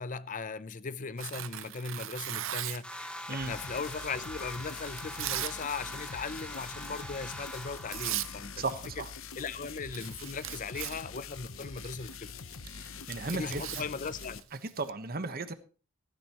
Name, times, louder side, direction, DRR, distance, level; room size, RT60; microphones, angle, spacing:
voice 1, 0.0-8.5 9.4-12.3 13.3-14.4, left 4 dB, 40° left, 0.6 m, -38 dB
Tearing, 1.2-2.9 3.7-5.6 5.9-6.2 6.6-6.9 7.6-7.7 7.9-8.3 8.6-9.1 9.4-9.5 9.7-14.9, right 13 dB, 75° right, 0.6 m, -39 dB
sound 1, 2.8-9.0, equal, 5° left, 3.0 m, -43 dB
sound 2, 3.4-14.4, left 5 dB, 85° left, 1.0 m, -45 dB
voice 2, 8.6-9.1 12.7-13.8 14.6-15.5, right 3 dB, 50° right, 1.3 m, -36 dB
15.5 x 15.5 x 3.1 m
head